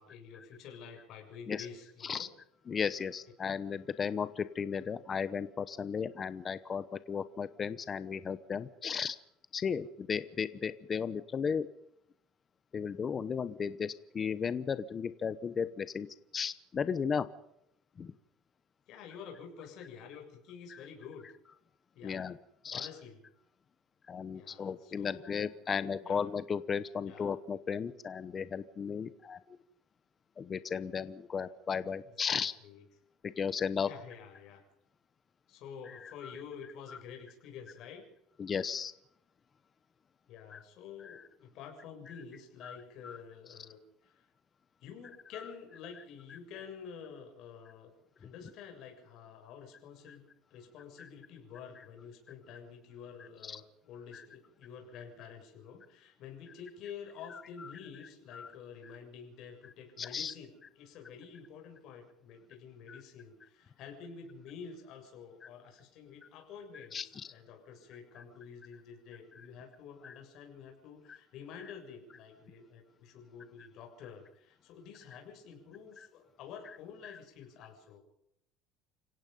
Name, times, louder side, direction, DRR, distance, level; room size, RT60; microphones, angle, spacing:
voice 1, 0.0-2.3 18.9-21.3 21.9-22.2 22.7-23.2 24.3-26.3 27.0-27.3 32.0-32.8 33.8-34.6 35.5-38.0 40.3-43.8 44.0-44.2 44.8-47.9 48.2-78.0, left 6 dB, 50° left, 3 dB, 7.2 m, -49 dB
voice 2, 2.7-9.2 9.5-11.7 12.7-16.1 16.3-17.3 18.0-18.1 20.7-20.8 22.0-22.4 22.6-22.9 24.1-29.4 30.4-32.5 33.2-33.9 36.0-36.1 38.4-38.9 40.5-40.6 41.0-41.2 42.6-42.8 43.0-43.2 53.4-53.6 54.1-54.2 58.3-58.5 60.0-60.3 62.9-63.0 66.9-67.0 68.2-68.3 70.0-70.1 71.1-71.2 77.0-77.2, left 6 dB, 25° left, 14 dB, 1.0 m, -35 dB
29.5 x 17.0 x 5.4 m, 0.77 s
cardioid pair, 155°, 0 cm